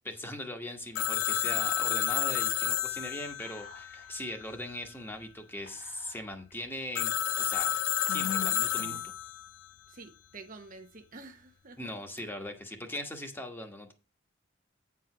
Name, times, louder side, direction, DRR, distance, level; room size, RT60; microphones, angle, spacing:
voice 1, 0.0-7.1 7.4-7.8 8.1-9.1 11.8-13.9, left 1 dB, 10° left, 1.2 m, -40 dB
Telephone, 1.0-4.6 7.0-9.5, left 12 dB, 70° left, 0.4 m, -31 dB
Whispering, 3.4-4.1 4.4-4.5 5.7-6.5 7.1-7.2 8.0-9.2, left 7 dB, 50° left, 2.5 m, -42 dB
voice 2, 9.9-11.8 12.2-12.3, right 3 dB, 40° right, 0.8 m, -49 dB
9.1 x 4.7 x 5.9 m
head